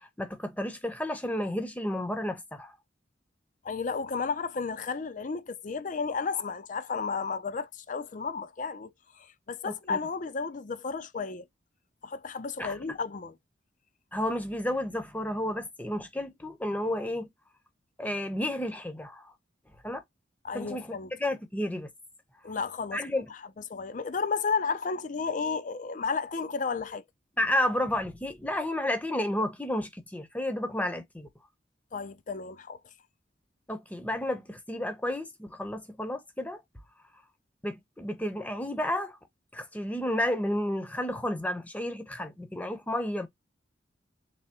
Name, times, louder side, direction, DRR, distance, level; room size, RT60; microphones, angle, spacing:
voice 1, 0.0-2.7 9.6-10.0 12.6-12.7 14.1-17.3 18.0-19.3 19.8-20.0 20.5-21.9 22.9-23.3 27.4-31.3 33.7-36.6 37.6-39.2 39.5-43.3, left 1 dB, 10° left, 0.7 m, -31 dB
voice 2, 3.6-11.5 12.0-13.4 20.4-21.1 22.4-23.0 23.3-23.4 23.7-27.0 31.9-32.8, left 5 dB, 45° left, 0.5 m, -33 dB
3.4 x 3.3 x 2.9 m
head